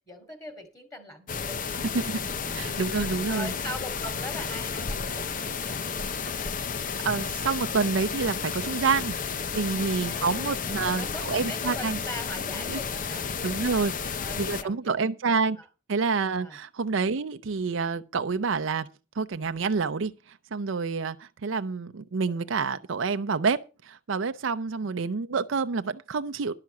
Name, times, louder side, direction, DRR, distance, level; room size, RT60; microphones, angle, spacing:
voice 1, 0.1-1.6 2.2-2.7 3.3-5.7 10.0-13.2 13.7-15.1 15.6-15.7 16.4-16.6 22.3-22.5 24.6-24.7, left 1 dB, 15° left, 2.5 m, -41 dB
sound 1, 1.3-14.6, left 5 dB, 40° left, 0.6 m, -32 dB
voice 2, 2.4-3.5 7.0-12.0 12.7-12.8 13.4-15.6 15.9-18.9 19.2-26.5, right 4 dB, 75° right, 0.5 m, -28 dB
11.5 x 5.7 x 7.2 m
head